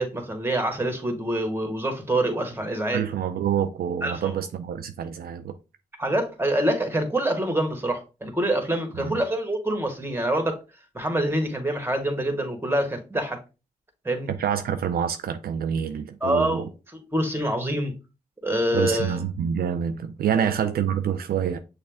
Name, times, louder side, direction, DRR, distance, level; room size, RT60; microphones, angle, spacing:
voice 1, 0.0-3.1 4.0-4.3 6.0-10.6 10.9-13.4 14.0-14.3 16.2-16.7 17.1-17.9 18.4-19.2, right 1 dB, 15° right, 1.6 m, -26 dB
voice 2, 2.9-5.6 9.0-9.2 14.3-16.6 18.7-21.6, right 8 dB, 70° right, 0.4 m, -27 dB
6.4 x 2.2 x 3.6 m
supercardioid pair, 40°, 16 cm